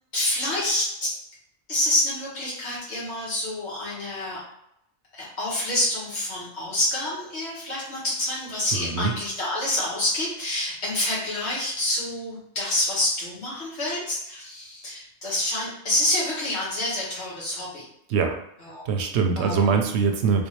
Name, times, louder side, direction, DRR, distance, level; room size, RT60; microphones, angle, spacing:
voice 1, 0.1-1.1 1.7-4.4 5.1-17.9 18.6-18.8 19.4-19.7, left 1 dB, 75° left, -7 dB, 1.7 m, -27 dB
voice 2, 8.7-9.1 18.1-18.4 18.9-20.5, right 5 dB, 80° right, 4 dB, 0.9 m, -23 dB
3.5 x 2.6 x 3.1 m, 0.75 s
omnidirectional pair, 1.1 m